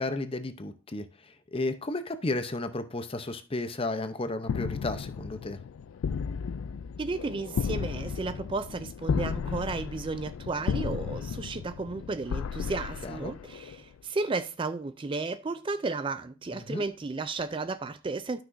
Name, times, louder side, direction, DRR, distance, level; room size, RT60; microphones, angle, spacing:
voice 1, 0.0-5.6 13.0-13.3 16.5-16.8, left 2 dB, 25° left, 0.7 m, -33 dB
sound 1, 4.4-14.0, left 6 dB, 80° left, 0.3 m, -34 dB
voice 2, 7.0-18.4, right 3 dB, 25° right, 0.3 m, -33 dB
12.5 x 6.0 x 2.6 m
head